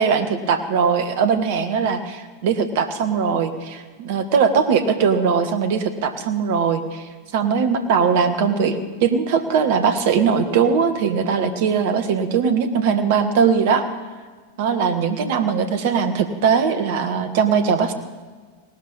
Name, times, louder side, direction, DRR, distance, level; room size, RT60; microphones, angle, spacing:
voice 1, 0.0-7.0 7.3-8.7 9.0-13.9 14.6-17.9, right 6 dB, 50° right, 9 dB, 1.5 m, -20 dB
18.0 x 12.5 x 5.5 m, 1.5 s
figure-of-eight pair, 90°, 0 cm